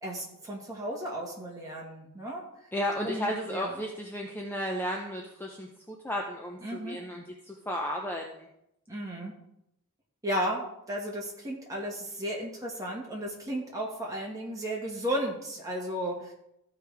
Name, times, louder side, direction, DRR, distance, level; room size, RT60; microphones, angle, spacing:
voice 1, 0.0-2.4 3.0-3.7 6.6-7.0 8.9-9.3 10.2-16.3, equal, 15° right, -3 dB, 1.7 m, -34 dB
voice 2, 2.7-8.5, equal, 10° left, 0 dB, 0.6 m, -34 dB
14.5 x 4.9 x 3.4 m, 0.82 s
head